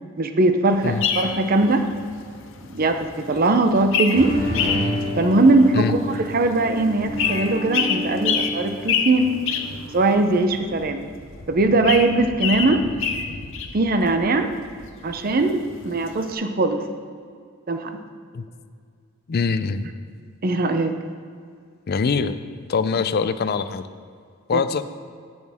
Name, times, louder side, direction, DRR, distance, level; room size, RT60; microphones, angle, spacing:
voice 1, 0.2-1.9 2.7-4.3 5.2-9.3 9.9-11.1 11.5-12.8 13.7-14.5 15.0-16.8 17.7-18.0 20.4-21.0 24.5-24.6, right 2 dB, 45° right, 7 dB, 0.6 m, -20 dB
sound 1, 0.7-16.3, left 7 dB, 65° left, 0.8 m, -29 dB
sound 2, 4.1-10.3, equal, 75° right, 2.5 m, -30 dB
voice 2, 19.3-19.8 21.9-22.4 22.7-23.8 24.5-24.8, left 5 dB, 50° left, 12 dB, 0.4 m, -23 dB
15.5 x 6.3 x 3.5 m, 2.2 s
head